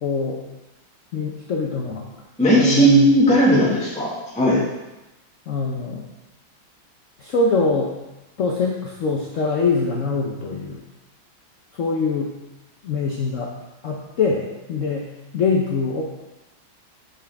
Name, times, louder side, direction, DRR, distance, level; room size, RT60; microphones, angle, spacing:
voice 1, 0.0-0.4 1.1-2.0 2.6-3.1 5.5-6.0 7.2-7.9 8.4-10.8 11.7-12.3 12.8-13.5 13.8-14.4 14.7-15.1 15.3-16.0, left 4 dB, 70° left, -1 dB, 0.7 m, -23 dB
voice 2, 2.4-4.1 4.3-4.6, right 1 dB, 5° left, -7 dB, 1.3 m, -16 dB
6.7 x 6.1 x 3.4 m, 1.0 s
omnidirectional pair, 2.2 m